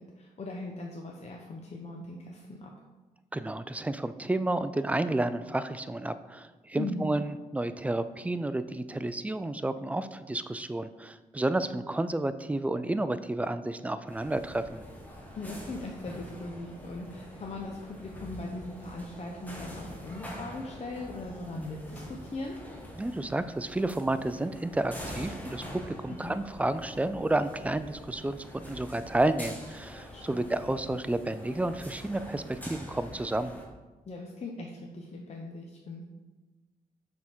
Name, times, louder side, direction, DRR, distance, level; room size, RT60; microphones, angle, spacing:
voice 1, 0.0-2.7 6.7-7.1 15.3-22.5 26.2-26.4 30.0-30.4 34.1-36.0, left 2 dB, 40° left, 0 dB, 0.7 m, -39 dB
voice 2, 3.3-14.8 23.0-33.6, right 2 dB, 10° right, 12 dB, 0.3 m, -31 dB
sound 1, 14.1-33.7, equal, 10° left, 1.4 m, -45 dB
6.3 x 3.6 x 4.5 m, 1.2 s
cardioid pair, 70°, 16 cm